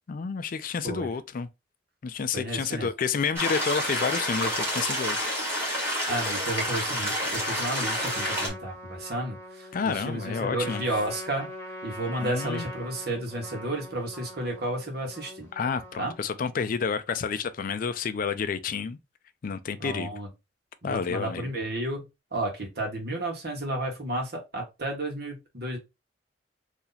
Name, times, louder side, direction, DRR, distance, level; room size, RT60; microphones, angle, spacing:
voice 1, 0.1-1.5 2.0-5.3 9.7-10.8 12.2-12.7 15.5-19.0 19.4-20.1 20.8-21.5, left 6 dB, 50° left, 0.4 m, -30 dB
voice 2, 2.3-2.9 6.1-11.5 11.8-15.5 16.0-16.1 19.8-20.3 20.8-25.8, right 1 dB, 60° right, 1.4 m, -32 dB
sound 1, 3.4-8.5, equal, 15° right, 1.5 m, -29 dB
Trumpet, 7.6-16.3, equal, 15° left, 1.2 m, -42 dB
2.8 x 2.7 x 3.9 m
head